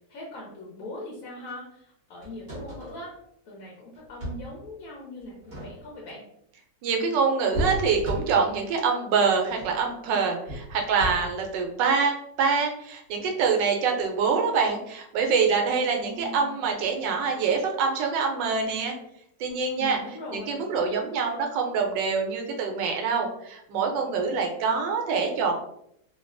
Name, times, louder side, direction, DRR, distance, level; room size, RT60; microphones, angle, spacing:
voice 1, 0.1-3.1 3.5-6.2 15.9-16.8 19.8-20.6, left 2 dB, 65° left, -3 dB, 0.9 m, -41 dB
sound 1, 2.2-3.0 3.9-4.6 5.3-6.1 7.5-8.6 9.5-9.8 10.5-11.5 13.2-13.3, equal, 40° right, 1.0 m, -34 dB
voice 2, 6.8-18.9 19.4-20.0 20.3-25.5, right 5 dB, 85° right, 3 dB, 1.3 m, -25 dB
3.2 x 2.2 x 2.4 m, 0.75 s
omnidirectional pair, 1.9 m